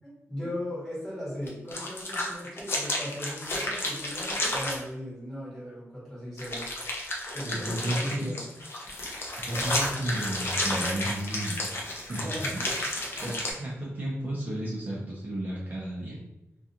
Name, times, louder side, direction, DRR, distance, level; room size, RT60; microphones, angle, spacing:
voice 1, 0.0-6.7 7.3-8.5 12.2-12.6 13.1-13.4, left 1 dB, 5° left, -9 dB, 1.3 m, -38 dB
sound 1, 1.5-4.8 6.4-13.5, left 1 dB, 50° left, 0.5 m, -32 dB
voice 2, 7.4-8.3 9.5-11.6 12.1-12.2 12.5-12.7 13.2-13.3 13.6-16.2, right 1 dB, 35° right, -6 dB, 0.6 m, -32 dB
2.4 x 2.3 x 2.8 m, 0.94 s
wide cardioid pair, 160°, 5 cm